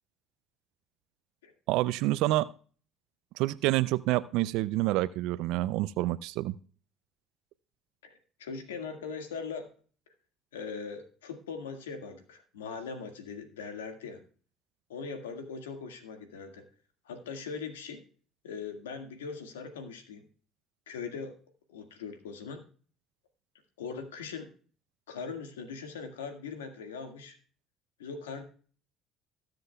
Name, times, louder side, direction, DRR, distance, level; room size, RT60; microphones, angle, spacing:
voice 1, 1.7-2.5 3.4-6.6, right 17 dB, 70° right, 17 dB, 0.4 m, -28 dB
voice 2, 8.0-9.7 10.5-14.2 14.9-16.6 17.1-18.0 18.4-20.3 20.9-21.3 21.7-22.6 23.8-24.5 25.1-27.4 28.0-28.4, left 5 dB, 90° left, 6 dB, 1.8 m, -40 dB
20.5 x 7.7 x 2.3 m, 0.41 s
hypercardioid pair, 65°, 0 cm